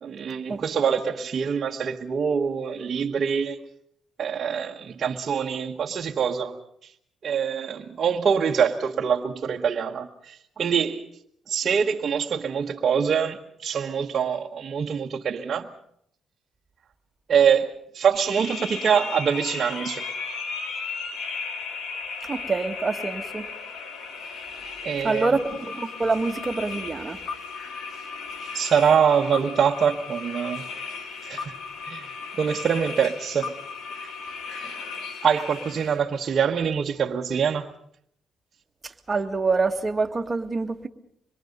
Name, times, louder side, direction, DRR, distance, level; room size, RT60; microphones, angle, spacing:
voice 1, 0.0-3.6 4.2-6.6 7.2-11.0 11.5-15.7 17.3-20.1 24.8-25.3 28.5-30.6 31.2-31.5 31.8-32.1 32.4-33.5 34.0-34.1 35.2-37.7, right 7 dB, 50° right, 1.4 m, -24 dB
sound 1, 18.1-36.0, left 5 dB, 75° left, 2.5 m, -35 dB
voice 2, 22.2-23.5 25.0-27.2 38.8-40.9, right 3 dB, 25° right, 2.0 m, -26 dB
26.0 x 22.5 x 5.4 m
cardioid pair, 90°, 0 cm